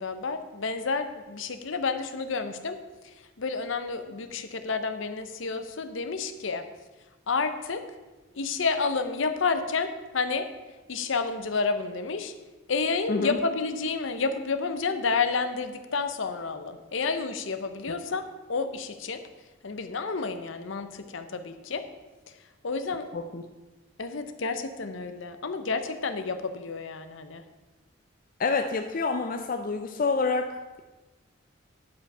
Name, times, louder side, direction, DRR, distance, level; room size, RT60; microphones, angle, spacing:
voice 1, 0.0-2.8 3.0-6.6 7.3-7.8 8.3-10.5 10.9-12.3 12.7-19.2 19.6-21.8 22.6-23.1 24.0-27.4, left 4 dB, 70° left, 9 dB, 0.7 m, -30 dB
voice 2, 23.1-23.5 28.4-30.8, left 4 dB, 40° left, 5 dB, 0.4 m, -28 dB
10.0 x 5.4 x 5.4 m, 1.2 s
head